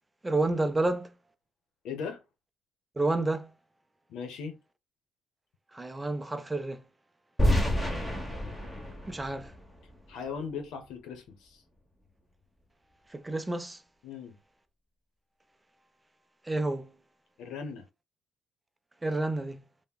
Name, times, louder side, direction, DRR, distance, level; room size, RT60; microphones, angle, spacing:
voice 1, 0.2-1.1 3.0-3.5 5.7-6.9 9.1-9.6 13.1-13.8 16.4-16.9 19.0-19.7, right 2 dB, 15° right, 0.4 m, -30 dB
voice 2, 1.8-2.2 4.1-4.6 10.1-11.6 14.0-14.4 17.4-17.9, left 6 dB, 90° left, 0.7 m, -38 dB
sound 1, 7.4-10.4, equal, 15° left, 0.9 m, -29 dB
3.4 x 2.0 x 2.3 m
cardioid pair, 90°, 0 cm